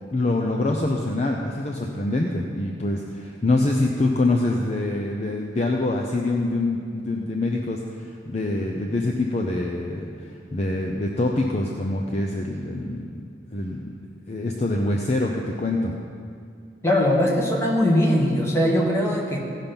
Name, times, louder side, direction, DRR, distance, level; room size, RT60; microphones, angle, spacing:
voice 1, 0.1-13.1 13.5-13.9 14.3-15.9, left 2 dB, 35° left, 1 dB, 0.6 m, -25 dB
voice 2, 16.8-19.4, left 1 dB, 15° left, -2 dB, 1.4 m, -20 dB
16.5 x 5.7 x 5.3 m, 2.4 s
head